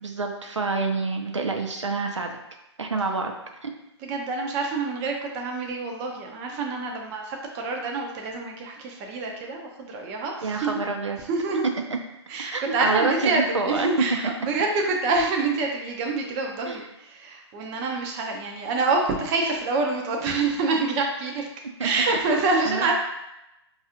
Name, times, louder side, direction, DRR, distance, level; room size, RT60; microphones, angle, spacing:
voice 1, 0.0-2.4 2.8-3.3 3.6-3.7 10.4-11.2 12.5-13.9 16.7-16.9 21.8-21.9 22.7-22.9, right 3 dB, 90° right, 3 dB, 0.6 m, -27 dB
voice 2, 4.0-10.8 11.2-11.6 12.3-21.5 21.8-22.9, right 3 dB, 20° right, 1 dB, 0.4 m, -26 dB
4.6 x 2.4 x 2.8 m, 0.90 s
hypercardioid pair, 140°, 15 cm